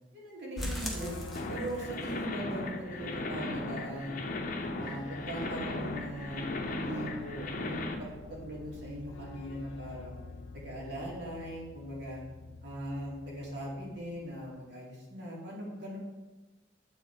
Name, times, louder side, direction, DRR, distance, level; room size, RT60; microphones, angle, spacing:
voice 1, 0.1-1.2 1.5-4.2 4.8-10.2 10.5-12.2 12.6-16.0, right 1 dB, 65° right, -5 dB, 2.4 m, -40 dB
sound 1, 0.6-2.1 2.4-2.5 2.9-3.0 3.4-3.5, equal, ahead, 1.0 m, -38 dB
sound 2, 1.0-14.7, left 3 dB, 85° left, 0.4 m, -48 dB
sound 3, 1.4-7.9, left 2 dB, 45° left, 0.7 m, -37 dB
7.8 x 4.2 x 4.5 m, 1.1 s
head